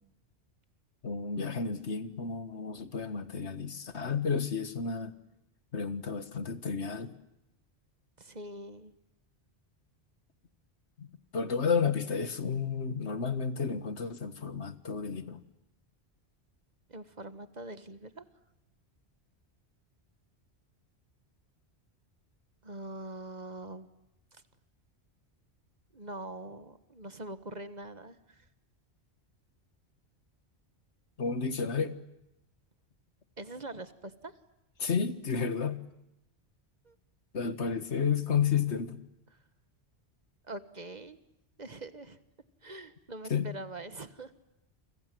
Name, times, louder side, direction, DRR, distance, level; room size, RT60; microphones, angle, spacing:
voice 1, 1.0-5.1 5.7-7.1 11.0-11.1 11.3-15.4 31.2-32.0 34.8-35.8 37.3-39.0 43.3-43.5, left 6 dB, 90° left, 12 dB, 1.9 m, -31 dB
voice 2, 8.2-8.9 16.9-18.2 22.6-23.9 24.3-24.4 25.9-28.5 33.4-34.3 36.8-36.9 40.4-41.2 41.6-42.2 42.6-44.3, right 2 dB, 40° right, 12 dB, 1.6 m, -43 dB
29.5 x 25.0 x 7.7 m, 0.86 s
omnidirectional pair, 1.1 m